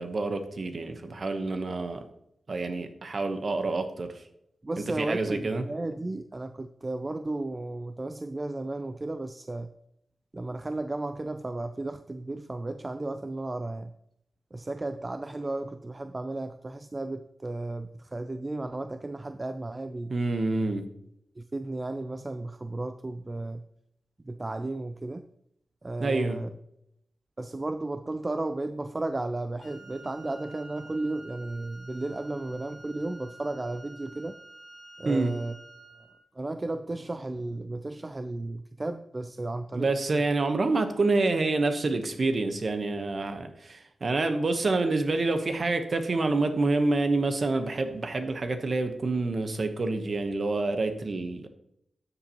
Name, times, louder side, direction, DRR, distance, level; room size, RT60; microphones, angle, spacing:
voice 1, 0.0-2.0 2.5-4.1 5.0-5.6 20.1-20.9 26.0-26.4 35.0-35.3 39.7-51.5, right 3 dB, 50° right, 8 dB, 1.0 m, -27 dB
voice 2, 4.6-9.7 10.3-13.9 14.5-20.1 21.4-23.6 24.2-25.3 25.8-26.5 27.4-34.4 35.0-35.5 36.4-39.9, right 2 dB, 25° right, 9 dB, 0.4 m, -34 dB
Wind instrument woodwind instrument, 29.6-36.3, right 2 dB, 70° left, 1.5 m, -50 dB
12.5 x 7.0 x 3.0 m, 0.76 s
wide cardioid pair, 95°, 0 cm